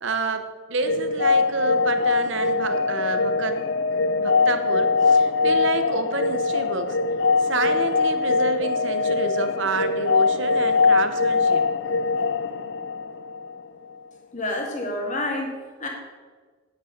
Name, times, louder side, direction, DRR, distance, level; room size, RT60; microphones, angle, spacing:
voice 1, 0.0-3.6 4.2-7.0 7.4-11.6, right 4 dB, 60° right, 7 dB, 0.9 m, -29 dB
sound 1, 0.8-13.6, left 4 dB, 60° left, 0.5 m, -22 dB
voice 2, 14.3-15.9, left 1 dB, 35° left, 1 dB, 2.2 m, -28 dB
9.1 x 9.0 x 6.6 m, 1.4 s
head